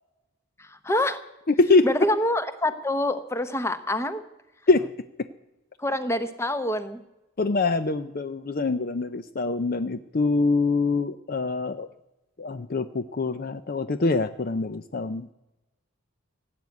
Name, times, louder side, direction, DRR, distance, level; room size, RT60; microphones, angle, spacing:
voice 1, 0.6-1.2 1.8-4.2 5.8-7.0, left 1 dB, 10° left, 11 dB, 0.9 m, -26 dB
voice 2, 7.4-11.9 12.4-15.3, left 3 dB, 40° left, 11 dB, 0.5 m, -24 dB
17.0 x 9.3 x 8.4 m, 0.99 s
head